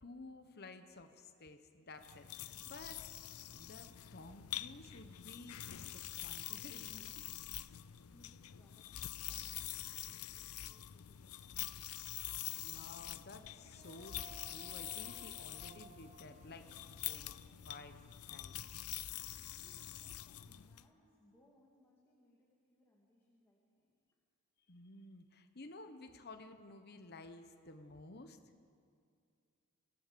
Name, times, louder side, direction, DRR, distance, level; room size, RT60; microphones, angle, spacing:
voice 1, 0.0-3.0 3.3-7.2 7.6-7.8 12.3-16.7 17.0-17.3 17.6-18.0 18.3-18.6 24.7-28.4, left 2 dB, 45° left, 7 dB, 1.1 m, -54 dB
sound 1, 2.0-20.8, left 13 dB, 85° left, 0.5 m, -46 dB
voice 2, 7.7-12.8 19.4-23.9, left 1 dB, 10° left, -4 dB, 2.3 m, -70 dB
Female singing, 13.6-18.8, right 7 dB, 30° right, 0.7 m, -61 dB
25.0 x 16.0 x 6.9 m, 2.3 s
head